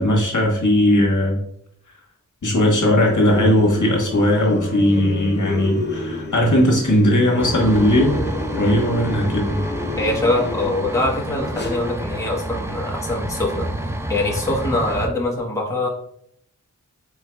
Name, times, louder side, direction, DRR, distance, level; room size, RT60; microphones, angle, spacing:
voice 1, 0.0-1.4 2.4-8.2 8.5-9.6, left 1 dB, 75° left, -1 dB, 1.2 m, -18 dB
sound 1, 3.0-11.9, left 2 dB, 35° left, 0.8 m, -30 dB
sound 2, 7.4-15.1, right 1 dB, 10° right, 0.4 m, -29 dB
voice 2, 10.0-13.7 14.1-15.9, left 2 dB, 10° left, -3 dB, 1.0 m, -23 dB
4.6 x 4.3 x 2.2 m, 0.70 s
wide cardioid pair, 75°, 30 cm